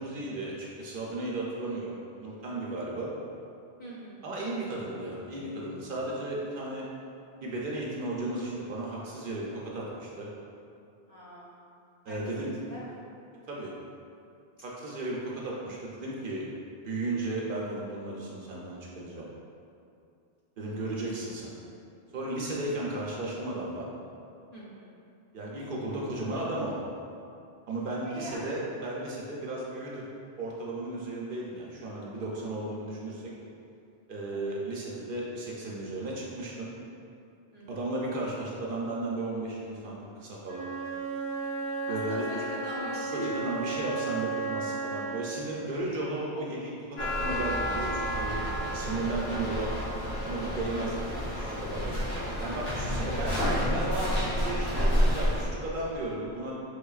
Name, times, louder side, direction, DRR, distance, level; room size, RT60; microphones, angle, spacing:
voice 1, 0.0-3.1 4.2-6.8 7.4-10.3 12.1-12.5 13.5-13.7 14.6-16.4 16.8-19.3 20.6-21.5 22.1-23.9 25.3-26.8 27.7-30.1 30.4-33.2 34.1-36.7 37.7-40.6 41.9-42.3 43.1-48.4 48.7-49.9 50.2-52.1 52.4-53.4 53.7-56.5, right 2 dB, 60° right, -4 dB, 0.7 m, -34 dB
voice 2, 3.8-4.3 11.1-11.6 12.1-13.0 20.6-20.7 24.5-24.9 28.0-28.6 34.3-34.5 37.5-37.8 41.9-43.5 48.8-49.4 52.9-53.3, equal, 45° left, -7 dB, 0.7 m, -42 dB
Wind instrument woodwind instrument, 40.4-45.4, right 3 dB, 85° right, 0.9 m, -34 dB
sound 1, 47.0-55.5, equal, 75° left, 1.4 m, -29 dB
4.4 x 3.3 x 2.3 m, 2.6 s
omnidirectional pair, 1.1 m